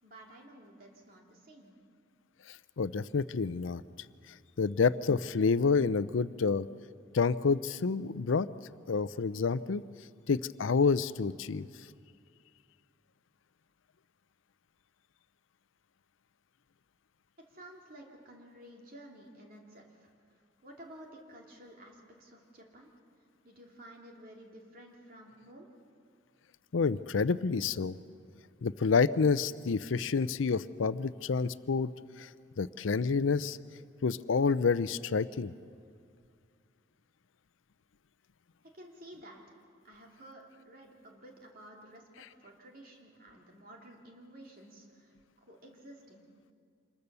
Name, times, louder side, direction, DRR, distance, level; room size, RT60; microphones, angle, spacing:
voice 1, 0.0-1.7 17.5-25.7 38.7-39.6 39.8-45.1 45.5-46.2, right 1 dB, 45° right, 0 dB, 2.9 m, -53 dB
voice 2, 2.5-3.8 4.6-6.7 7.1-8.5 8.9-9.8 10.3-11.7 26.7-28.0 28.6-31.9 32.2-32.3 32.6-33.6 34.0-35.5, left 5 dB, 80° left, 16 dB, 0.5 m, -28 dB
26.5 x 21.0 x 6.8 m, 2.2 s
head